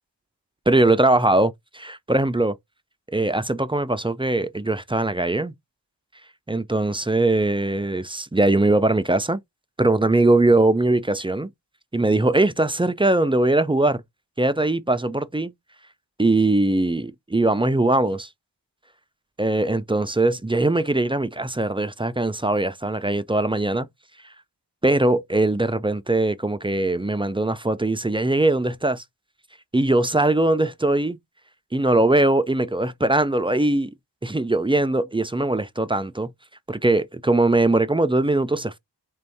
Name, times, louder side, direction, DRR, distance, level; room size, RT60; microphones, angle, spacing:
voice 1, 0.7-2.6 3.1-5.5 6.5-9.4 9.8-11.5 11.9-14.0 14.4-15.5 16.2-18.3 19.4-23.9 24.8-29.0 29.7-31.2 31.7-33.9 34.2-36.3 36.7-38.8, right 2 dB, 15° right, 0.3 m, -21 dB
3.8 x 2.6 x 3.4 m
wide cardioid pair, 55°, 43 cm